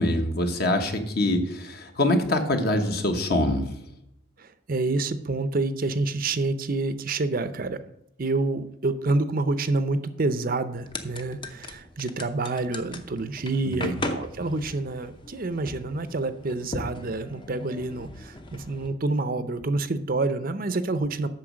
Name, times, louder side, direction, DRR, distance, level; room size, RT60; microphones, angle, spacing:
voice 1, 0.0-3.7 13.8-13.9, left 1 dB, 50° left, 5 dB, 1.2 m, -24 dB
voice 2, 4.4-7.8 8.2-21.3, right 3 dB, 45° right, 11 dB, 0.6 m, -28 dB
sound 1, 10.8-18.9, left 2 dB, 25° left, 0.7 m, -38 dB
8.7 x 6.5 x 6.3 m, 0.80 s
head